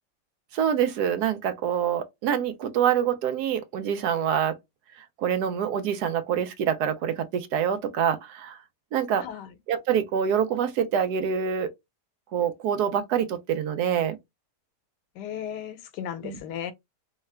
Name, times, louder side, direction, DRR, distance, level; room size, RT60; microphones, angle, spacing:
voice 1, 0.5-4.6 5.2-8.6 8.9-9.3 9.7-11.7 12.3-14.2 16.2-16.4, right 8 dB, 75° right, 1.1 m, -26 dB
voice 2, 9.2-9.5 15.1-16.7, left 9 dB, 85° left, 1.2 m, -35 dB
3.2 x 2.3 x 3.2 m
omnidirectional pair, 1.8 m